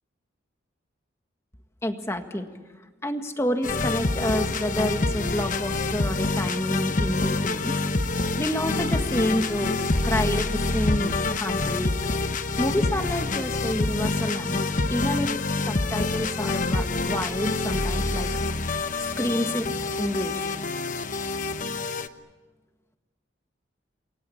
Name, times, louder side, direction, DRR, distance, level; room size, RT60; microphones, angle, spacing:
voice 1, 1.8-2.5 3.0-7.8 8.0-9.7 10.0-12.0 12.6-15.3 15.7-18.3 19.2-19.7 20.0-20.6, left 1 dB, 15° left, 6 dB, 1.7 m, -29 dB
sound 1, 3.6-22.1, left 3 dB, 40° left, 1.0 m, -27 dB
29.0 x 21.5 x 8.6 m, 1.2 s
head